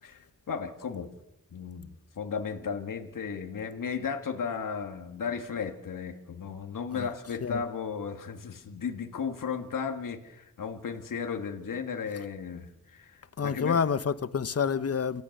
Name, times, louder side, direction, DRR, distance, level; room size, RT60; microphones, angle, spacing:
voice 1, 0.0-1.1 1.5-13.8, left 6 dB, 75° left, 2.0 m, -35 dB
voice 2, 13.4-15.2, left 6 dB, 50° left, 1.0 m, -28 dB
28.5 x 14.0 x 6.7 m
wide cardioid pair, 90°, 33 cm